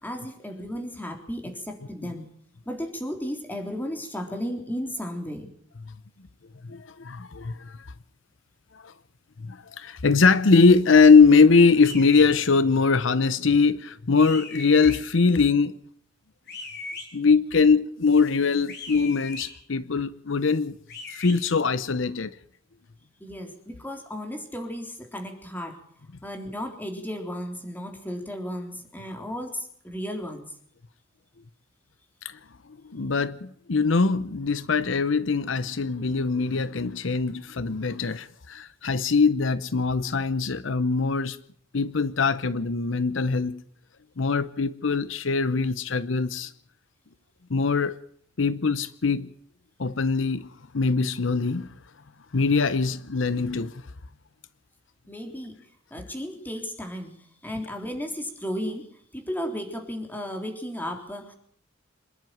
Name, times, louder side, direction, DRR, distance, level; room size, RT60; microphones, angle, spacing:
voice 1, 0.0-2.3 2.6-5.5 23.2-25.8 26.2-30.5 55.1-55.6 55.9-57.1 57.4-58.9 59.1-61.3, equal, 10° left, 3.6 m, -34 dB
voice 2, 6.7-7.9 8.7-8.9 9.4-15.8 17.1-20.8 21.1-22.4 32.2-32.4 32.8-41.4 41.7-43.6 44.2-46.5 47.5-48.0 48.4-49.3 49.8-50.5 50.7-51.7 52.3-53.8, left 4 dB, 75° left, 0.8 m, -22 dB
sound 1, 11.8-12.3 14.2-15.0 16.5-17.1 18.7-19.5 20.9-21.4, left 4 dB, 55° left, 6.3 m, -38 dB
26.0 x 11.0 x 9.3 m
head